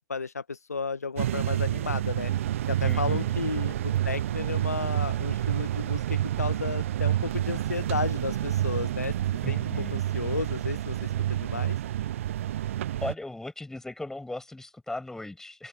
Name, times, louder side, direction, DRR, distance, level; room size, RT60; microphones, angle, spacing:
voice 1, 0.1-2.3 2.7-11.8, left 4 dB, 80° left, 1.6 m, -33 dB
sound 1, 1.2-13.1, right 12 dB, 55° right, 0.6 m, -28 dB
voice 2, 2.8-3.3 9.4-10.0 13.0-15.7, left 2 dB, 5° left, 7.6 m, -37 dB
open air
figure-of-eight pair, 100°, 8 cm